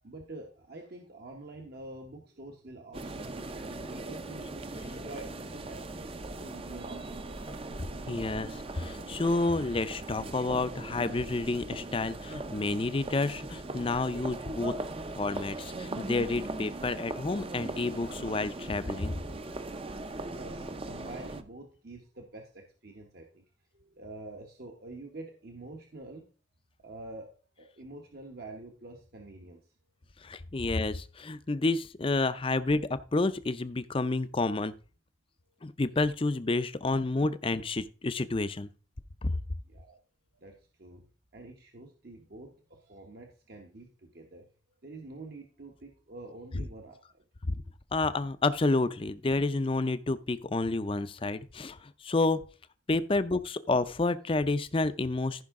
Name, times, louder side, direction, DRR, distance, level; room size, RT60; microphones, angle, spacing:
voice 1, 0.0-7.6 20.2-23.4 23.7-26.2 26.8-29.7 39.6-40.0 40.3-41.0 41.3-44.5 44.8-47.2, right 2 dB, 55° right, 2 dB, 1.1 m, -47 dB
sound 1, 2.9-21.4, right 2 dB, 30° right, 0.6 m, -39 dB
voice 2, 8.1-14.7 15.1-19.2 30.2-34.7 35.6-38.7 39.2-39.4 47.4-47.5 47.9-51.8 52.0-52.4 52.9-55.4, left 2 dB, 30° left, 13 dB, 0.5 m, -29 dB
14.5 x 5.6 x 3.6 m, 0.36 s
head